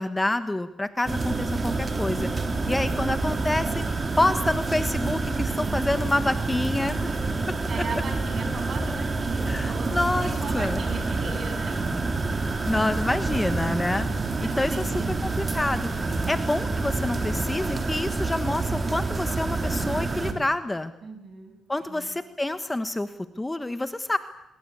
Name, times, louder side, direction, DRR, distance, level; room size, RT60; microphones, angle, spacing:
voice 1, 0.0-2.3 2.7-3.9 4.2-7.0 7.5-7.6 9.5-10.8 12.6-14.1 14.4-14.9 15.2-15.9 16.3-20.9 21.7-24.2, left 2 dB, 15° left, 11 dB, 1.3 m, -27 dB
sound 1, 1.1-20.3, right 3 dB, 30° right, 3.3 m, -28 dB
voice 2, 7.1-11.8 14.4-15.5 16.2-16.4 21.0-21.6 21.9-22.1, right 4 dB, 50° right, 5 dB, 8.0 m, -38 dB
24.0 x 21.5 x 8.7 m, 0.91 s
cardioid pair, 90°, 0 cm